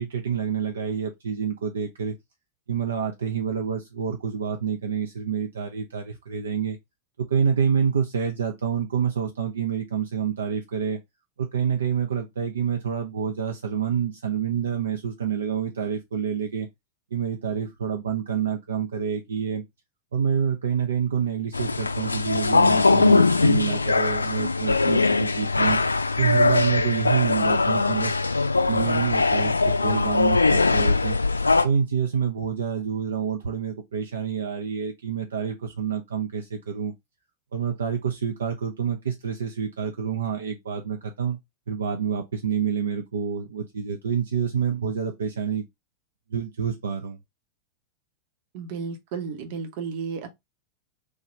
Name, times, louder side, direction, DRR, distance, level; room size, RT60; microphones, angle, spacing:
voice 1, 0.0-2.2 2.7-6.8 7.2-11.0 11.4-16.7 17.1-19.6 20.1-25.8 26.2-28.2 28.7-31.2 31.6-36.9 37.5-41.4 41.7-45.6 46.3-47.2, right 7 dB, 70° right, 0.4 m, -27 dB
sound 1, 21.5-31.6, left 3 dB, 80° left, 0.4 m, -21 dB
voice 2, 48.5-50.3, right 5 dB, 50° right, 0.7 m, -33 dB
3.2 x 2.3 x 2.9 m
figure-of-eight pair, 90°, 0 cm